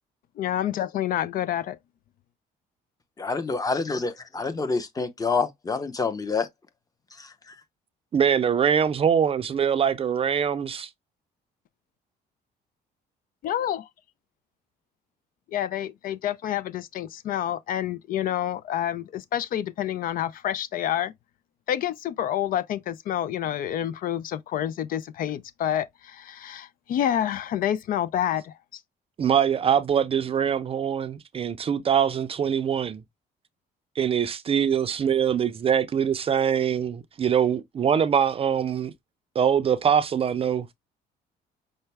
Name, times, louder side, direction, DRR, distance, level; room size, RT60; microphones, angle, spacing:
voice 1, 0.4-1.8 13.4-13.9 15.5-21.1 21.7-28.5, left 11 dB, 55° left, 0.4 m, -28 dB
voice 2, 3.2-6.5 7.2-7.5, left 4 dB, 20° left, 0.8 m, -27 dB
voice 3, 8.1-10.9 29.2-33.0 34.0-38.9 39.4-40.7, right 8 dB, 35° right, 0.4 m, -23 dB
5.6 x 2.1 x 3.3 m
cardioid pair, 110°, 17 cm